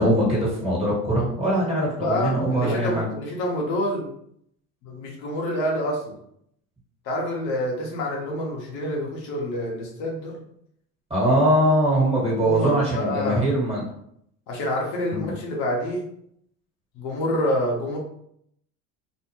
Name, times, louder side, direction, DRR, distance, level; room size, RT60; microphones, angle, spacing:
voice 1, 0.0-3.1 11.1-13.8 15.1-15.3, right 1 dB, 15° right, -6 dB, 1.5 m, -22 dB
voice 2, 2.0-4.1 4.8-6.2 7.0-10.4 12.4-13.5 14.5-16.1 16.9-18.0, left 1 dB, 65° left, -1 dB, 0.9 m, -27 dB
2.6 x 2.1 x 2.9 m, 0.71 s
supercardioid pair, 90°, 41 cm